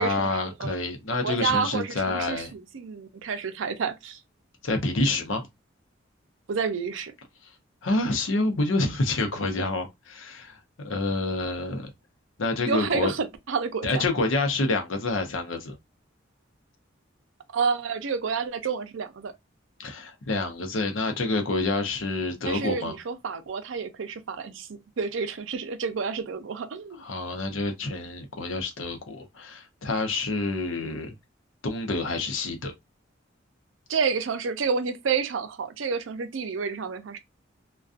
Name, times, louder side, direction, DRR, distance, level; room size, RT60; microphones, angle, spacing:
voice 1, 0.0-2.5 4.6-5.5 7.4-7.5 7.8-11.9 12.4-13.1 13.8-15.8 19.8-22.9 27.0-31.2 31.6-32.7, left 2 dB, 85° left, 0.7 m, -28 dB
voice 2, 1.2-4.2 6.5-7.1 12.7-14.0 17.5-19.3 22.4-27.0 33.9-37.2, right 5 dB, 80° right, 0.5 m, -29 dB
2.4 x 2.2 x 2.4 m
head